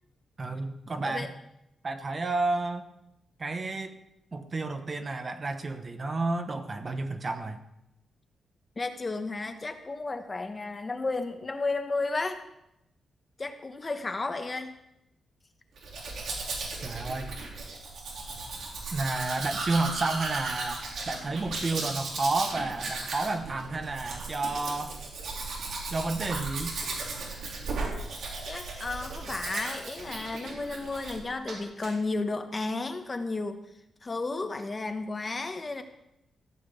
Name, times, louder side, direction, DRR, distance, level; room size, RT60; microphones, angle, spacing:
voice 1, 0.4-1.3 1.8-2.8 3.4-4.0 4.3-7.6 16.8-17.3 18.9-25.0 25.9-26.8, right 3 dB, 30° right, 8 dB, 1.1 m, -31 dB
voice 2, 8.8-12.4 13.4-14.7 28.5-33.6 34.0-35.8, left 3 dB, 25° left, 7 dB, 1.1 m, -33 dB
Domestic sounds home sounds, 15.8-31.2 31.5-31.9, right 3 dB, 75° right, 3.4 m, -36 dB
15.0 x 6.0 x 8.4 m, 0.85 s
wide cardioid pair, 140°, 0 cm